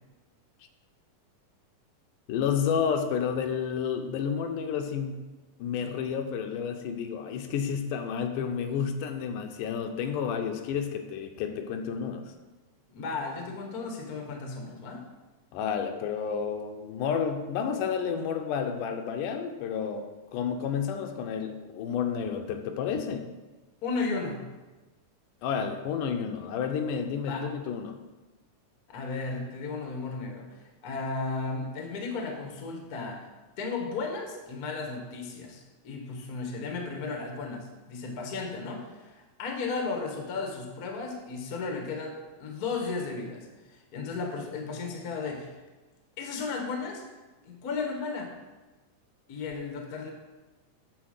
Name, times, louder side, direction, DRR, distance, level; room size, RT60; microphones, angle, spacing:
voice 1, 2.3-5.3 5.6-12.2 15.5-20.0 20.3-23.3 25.4-28.0, left 7 dB, 85° left, 6 dB, 2.3 m, -30 dB
voice 2, 12.9-15.0 23.8-24.4 27.3-27.5 28.9-33.3 33.6-45.5 46.2-47.0 47.4-48.3 49.3-50.1, left 4 dB, 65° left, 2 dB, 0.9 m, -34 dB
7.7 x 4.3 x 6.4 m, 1.2 s
omnidirectional pair, 3.6 m